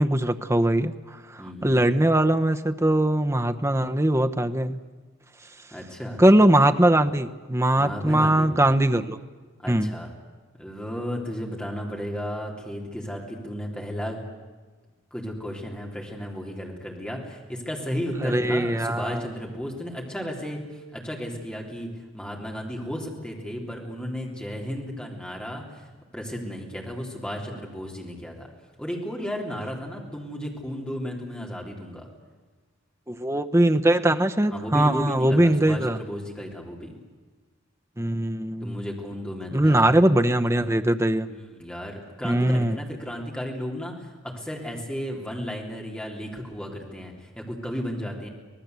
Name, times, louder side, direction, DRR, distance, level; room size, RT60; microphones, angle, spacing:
voice 1, 0.0-4.8 6.2-9.2 9.7-9.9 18.2-19.3 33.1-36.0 38.0-38.8 39.5-41.3 42.2-42.7, right 1 dB, 15° right, 8 dB, 0.9 m, -21 dB
voice 2, 1.4-1.8 5.7-6.2 7.8-8.5 9.6-10.1 10.6-14.2 15.1-21.9 22.1-25.9 26.1-28.5 28.8-32.1 34.5-37.0 38.6-40.0 41.3-48.3, equal, 5° left, -1 dB, 3.7 m, -34 dB
25.5 x 18.5 x 8.2 m, 1.4 s
head